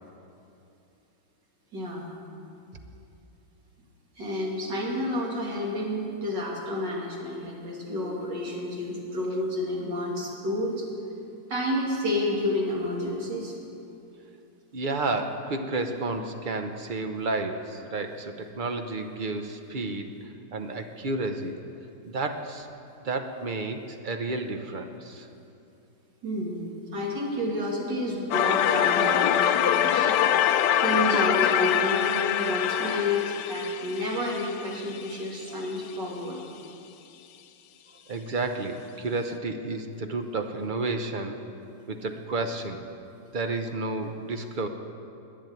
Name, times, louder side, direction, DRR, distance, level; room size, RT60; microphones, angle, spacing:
voice 1, 1.7-2.1 4.2-10.9 11.5-13.6 26.2-30.2 30.8-36.4, left 1 dB, 90° right, -3 dB, 3.1 m, -30 dB
voice 2, 14.7-20.1 20.5-21.5 22.0-22.7 23.0-25.3 38.1-41.4 41.9-42.9 43.3-44.7, right 3 dB, 40° right, 6 dB, 0.7 m, -31 dB
sound 1, 28.3-35.2, left 10 dB, 80° left, 1.2 m, -24 dB
11.0 x 9.6 x 9.2 m, 2.7 s
omnidirectional pair, 1.8 m